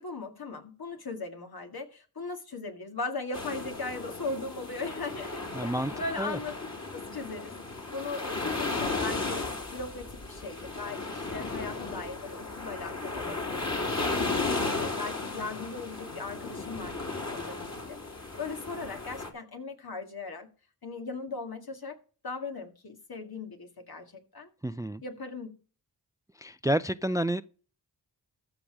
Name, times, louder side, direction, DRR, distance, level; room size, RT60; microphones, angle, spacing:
voice 1, 0.0-7.6 7.9-20.5 20.8-22.0 22.2-24.5 25.0-25.6, left 3 dB, 65° left, 2.1 m, -39 dB
sound 1, 3.3-19.3, left 3 dB, 40° left, 3.2 m, -35 dB
voice 2, 5.5-6.4 24.6-25.0 26.4-27.4, right 1 dB, 10° right, 0.4 m, -30 dB
14.0 x 5.0 x 6.1 m
cardioid pair, 60°, 40 cm